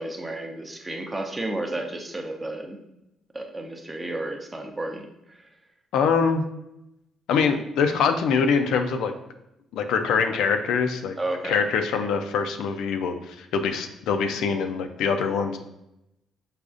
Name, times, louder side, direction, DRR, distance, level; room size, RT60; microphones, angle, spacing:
voice 1, 0.0-2.8 3.3-5.5 11.2-11.6, right 2 dB, 20° right, 3 dB, 0.5 m, -32 dB
voice 2, 5.9-6.4 7.3-9.1 9.7-11.2 11.4-15.6, left 5 dB, 85° left, 6 dB, 0.3 m, -24 dB
4.9 x 2.3 x 2.5 m, 0.86 s
cardioid pair, 90°, 0 cm